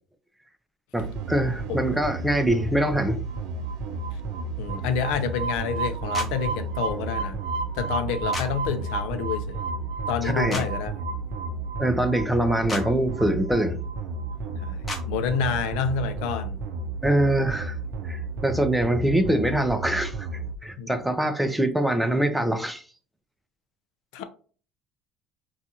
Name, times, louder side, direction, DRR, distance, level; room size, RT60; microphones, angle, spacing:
voice 1, 0.9-3.2 10.2-10.6 11.8-13.8 17.0-17.8 18.0-20.3 20.6-22.8, right 1 dB, 5° right, 0.4 m, -24 dB
sound 1, 1.0-20.5, right 3 dB, 65° right, 0.5 m, -32 dB
voice 2, 4.6-7.4 7.7-9.6 10.1-11.0 14.5-16.6 20.8-20.9 24.1-24.2, left 6 dB, 80° left, 0.5 m, -28 dB
sound 2, 6.1-6.3 8.3-8.5 10.5-10.7 12.7-12.8 14.9-15.0, left 2 dB, 20° left, 0.8 m, -31 dB
3.8 x 2.4 x 2.8 m
cardioid pair, 135°, 0 cm